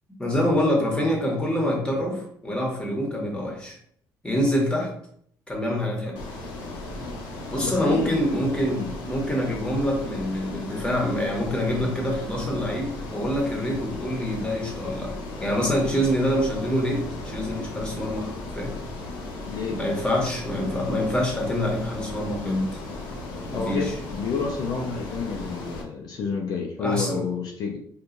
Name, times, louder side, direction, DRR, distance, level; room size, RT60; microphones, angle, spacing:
voice 1, 0.2-3.8 4.2-4.9 5.5-6.2 7.5-15.1 15.4-18.3 18.5-18.8 19.8-22.8 23.5-23.9 26.8-27.2, equal, 10° left, -1 dB, 1.3 m, -26 dB
Ocean, 6.2-25.8, left 2 dB, 90° left, 0.9 m, -36 dB
voice 2, 7.6-8.1 8.7-8.9 15.8-15.9 19.5-19.8 23.3-27.8, left 5 dB, 60° left, 0 dB, 0.6 m, -30 dB
4.5 x 2.5 x 2.6 m, 0.65 s
cardioid pair, 95°, 7 cm